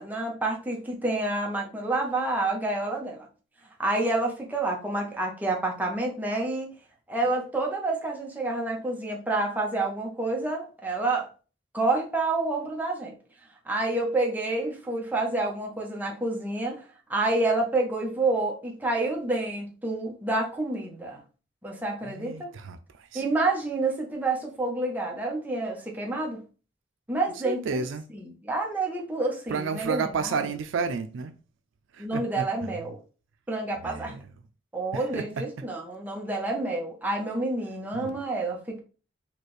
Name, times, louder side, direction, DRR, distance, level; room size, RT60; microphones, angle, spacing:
voice 1, 0.0-3.3 3.8-6.7 7.1-11.3 11.7-13.2 13.6-16.8 17.1-21.2 21.6-22.5 23.1-26.4 27.1-27.8 28.1-30.0 30.3-30.5 32.0-33.0 33.5-34.1 34.7-38.8, right 2 dB, 10° right, 0.8 m, -28 dB
voice 2, 22.0-23.2 27.4-28.0 29.5-31.3 31.9-32.9 33.8-34.4 34.9-35.6 37.9-38.2, right 5 dB, 80° right, 0.4 m, -32 dB
4.4 x 2.4 x 3.1 m
head